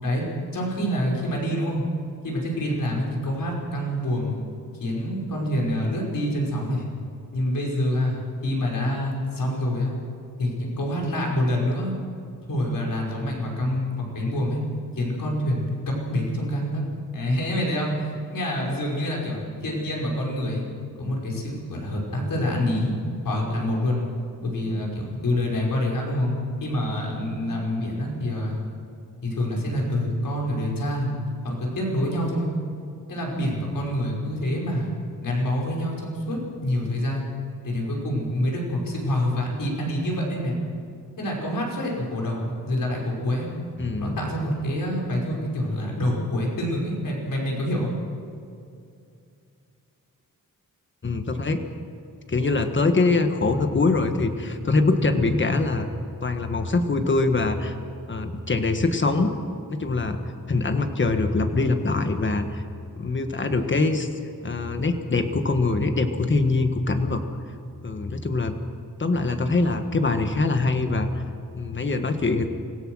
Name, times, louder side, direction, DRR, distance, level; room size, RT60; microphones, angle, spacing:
voice 1, 0.5-1.8 2.2-4.4 4.8-6.9 7.3-9.9 10.4-11.9 12.5-14.6 14.9-16.8 17.1-20.6 21.0-22.9 23.2-24.0 24.4-26.4 26.6-28.6 29.2-31.2 31.4-32.5 33.1-34.9 35.2-37.3 37.6-40.6 41.2-43.5 44.0-47.9, left 1 dB, 75° left, -2 dB, 5.5 m, -26 dB
voice 2, 43.8-44.2 51.0-51.6 52.3-55.9 56.2-57.7 58.1-59.3 59.7-60.2 60.5-62.6 63.0-64.1 64.4-67.2 67.8-68.5 69.0-71.1 71.5-72.5, left 3 dB, 35° left, 7 dB, 1.6 m, -23 dB
25.5 x 16.5 x 6.4 m, 2.5 s
wide cardioid pair, 125°, 34 cm